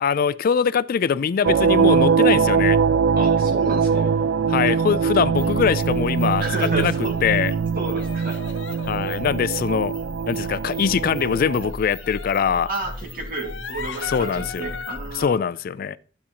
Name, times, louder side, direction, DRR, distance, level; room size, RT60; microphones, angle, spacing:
voice 1, 0.0-2.8 4.5-6.9 7.2-7.5 8.8-9.9 10.3-12.7 14.0-14.7 15.1-16.0, left 7 dB, 50° left, 0.3 m, -22 dB
sound 1, 1.4-11.7, right 6 dB, 75° right, 0.3 m, -22 dB
voice 2, 3.1-4.1 6.4-7.1 7.8-8.4 12.7-15.4, right 3 dB, 50° right, 2.2 m, -31 dB
sound 2, 4.7-4.8 5.3-5.9 6.1-7.2 8.0-9.7 11.6-12.4 12.9-15.0, left 6 dB, 85° left, 0.8 m, -38 dB
sound 3, 5.4-15.3, left 1 dB, 10° right, 1.4 m, -39 dB
13.0 x 8.4 x 2.9 m
head